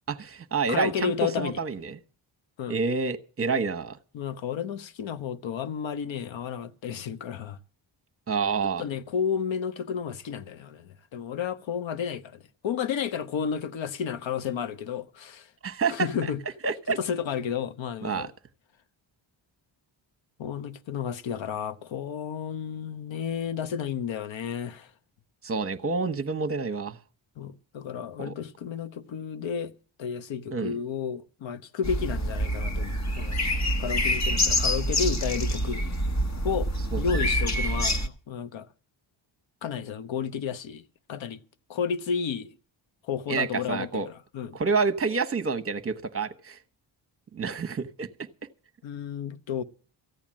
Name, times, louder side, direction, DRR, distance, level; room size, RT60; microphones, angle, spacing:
voice 1, 0.1-2.0 2.7-4.0 8.3-8.8 15.6-16.1 16.6-17.0 18.0-18.3 25.4-27.0 28.2-28.3 30.5-30.7 36.9-37.0 43.3-44.1 44.5-46.6 47.3-48.1, right 4 dB, 30° right, 1.1 m, -28 dB
voice 2, 0.7-1.6 2.6-2.8 4.1-7.6 8.8-15.5 15.9-16.4 16.9-18.3 20.4-24.9 27.4-29.7 30.0-33.4 33.8-35.8 36.4-36.7 37.0-38.7 39.6-40.8 41.1-41.4 41.7-42.5 43.1-44.6 48.8-49.6, left 7 dB, 70° left, 1.1 m, -32 dB
sound 1, 31.8-38.1, equal, 35° left, 1.3 m, -26 dB
14.5 x 8.9 x 7.5 m
cardioid pair, 100°, 47 cm